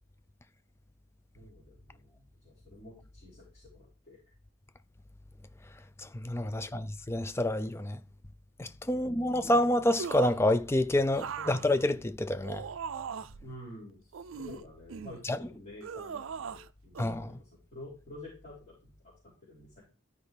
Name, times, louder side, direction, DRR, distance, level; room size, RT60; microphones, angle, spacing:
voice 1, 1.3-4.2 6.5-6.8 8.9-9.7 11.4-11.6 13.4-19.8, left 1 dB, 35° left, 3.9 m, -50 dB
voice 2, 6.2-8.0 8.6-12.6 15.3-15.4 17.0-17.3, left 1 dB, 10° left, 0.4 m, -28 dB
sound 1, 10.0-10.5 11.1-13.5 14.1-15.2 15.8-16.7 17.0-17.1, right 6 dB, 70° right, 0.4 m, -40 dB
13.0 x 4.9 x 3.4 m
head